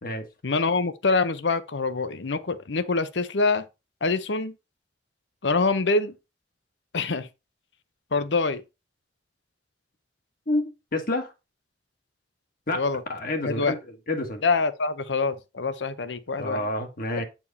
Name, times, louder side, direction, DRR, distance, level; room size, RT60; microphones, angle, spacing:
voice 1, 0.4-3.7 4.0-4.5 5.4-6.1 6.9-7.3 8.1-8.6 12.7-13.0 13.4-13.7 14.4-16.6, left 3 dB, 80° left, 0.8 m, -25 dB
voice 2, 10.5-11.3 12.7-12.8 13.1-13.8 14.1-14.4 16.4-17.2, left 1 dB, 55° left, 1.5 m, -28 dB
8.7 x 4.5 x 4.1 m
head